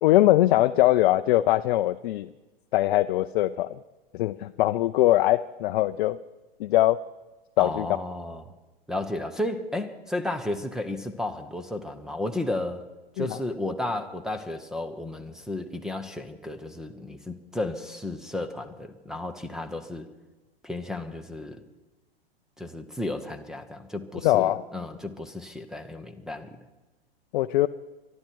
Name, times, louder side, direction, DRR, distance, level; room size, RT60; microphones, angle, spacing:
voice 1, 0.0-2.3 2.7-3.8 4.1-6.2 6.6-7.0 7.6-7.9 13.2-13.4 24.2-24.6 27.3-27.7, left 15 dB, 55° left, 9 dB, 0.6 m, -22 dB
voice 2, 7.6-8.4 8.9-12.8 13.2-20.1 20.6-21.7 22.6-26.6, left 1 dB, ahead, 9 dB, 1.0 m, -33 dB
23.0 x 12.0 x 4.6 m, 1.1 s
hypercardioid pair, 115°, 30 cm